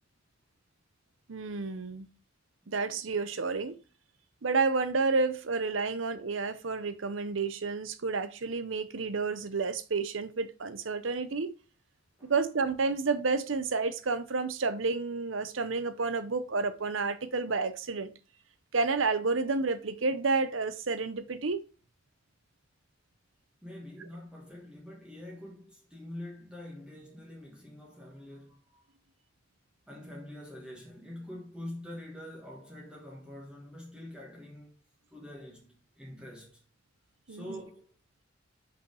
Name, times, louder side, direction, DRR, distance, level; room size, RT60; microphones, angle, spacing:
voice 1, 1.3-2.1 2.7-3.8 4.4-11.5 12.2-18.1 18.7-21.6 37.3-37.6, right 4 dB, 80° right, 0.8 m, -30 dB
voice 2, 23.6-28.8 29.9-34.7 35.1-36.6 37.3-37.9, left 1 dB, 5° right, 1.4 m, -45 dB
5.6 x 5.2 x 4.8 m
head